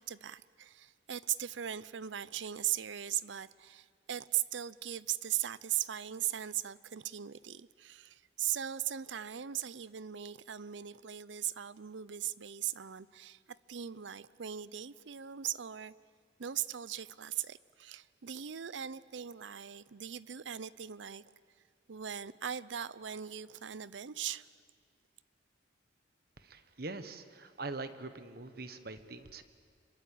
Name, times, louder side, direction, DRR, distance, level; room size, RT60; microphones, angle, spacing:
voice 1, 0.0-13.4 13.7-15.9 16.4-21.2 21.9-24.5, right 11 dB, 80° right, 18 dB, 0.6 m, -39 dB
voice 2, 26.4-29.4, right 3 dB, 55° right, 10 dB, 1.3 m, -43 dB
26.5 x 22.5 x 8.6 m, 2.1 s
head